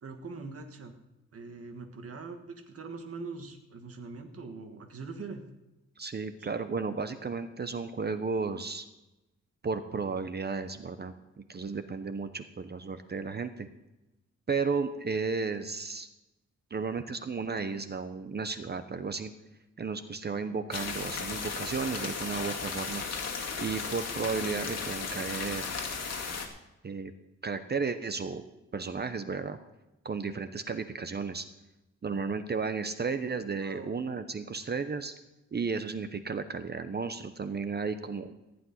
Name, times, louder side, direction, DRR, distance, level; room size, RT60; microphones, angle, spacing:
voice 1, 0.0-0.9 1.3-5.4 6.4-6.5 33.6-33.9, right 4 dB, 50° right, 4 dB, 1.7 m, -42 dB
voice 2, 6.0-8.9 9.6-11.1 11.5-13.7 14.5-16.1 16.7-19.3 19.8-23.0 23.6-25.6 26.8-27.1 27.4-28.4 28.7-29.6 30.0-31.5 32.0-35.1 35.5-38.3, right 4 dB, 35° right, 10 dB, 0.8 m, -33 dB
sound 1, 20.7-26.5, left 5 dB, 60° left, 2.3 m, -35 dB
15.5 x 5.2 x 9.6 m, 0.97 s
wide cardioid pair, 135°, 29 cm